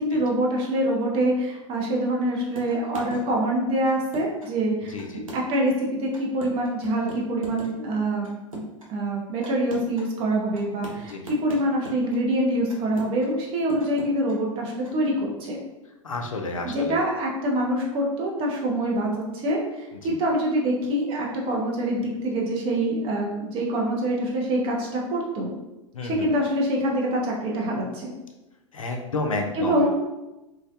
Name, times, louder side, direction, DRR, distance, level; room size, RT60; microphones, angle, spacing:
voice 1, 0.0-8.6 8.9-15.6 16.6-19.1 19.3-25.5 26.0-28.1 29.5-29.9, right 1 dB, 35° right, -1 dB, 0.6 m, -25 dB
sound 1, 2.5-3.2 3.9-4.5 5.0-5.7 6.1-7.7 8.2-8.9 9.4-10.1 10.5-12.2 12.7-13.3 13.7-14.3 14.8-14.9, right 1 dB, 90° right, 0.6 m, -40 dB
voice 2, 4.9-5.2 11.0-11.2 16.0-17.0 20.0-20.1 25.9-26.3 28.7-29.8, left 2 dB, 80° left, 2 dB, 0.4 m, -30 dB
2.3 x 2.1 x 2.6 m, 1.0 s
figure-of-eight pair, 90°, 17 cm